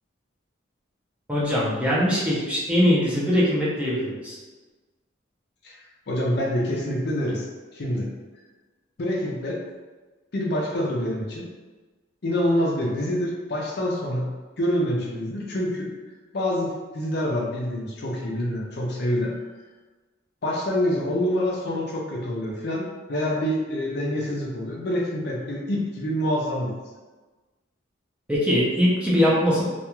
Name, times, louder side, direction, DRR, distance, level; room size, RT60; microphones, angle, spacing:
voice 1, 1.3-4.4 28.3-29.6, equal, 5° right, -7 dB, 0.5 m, -21 dB
voice 2, 5.6-8.1 9.0-9.6 10.3-11.5 12.2-15.9 16.3-19.4 20.4-26.7, left 1 dB, 55° left, -2 dB, 0.5 m, -26 dB
2.4 x 2.2 x 2.9 m, 1.3 s
head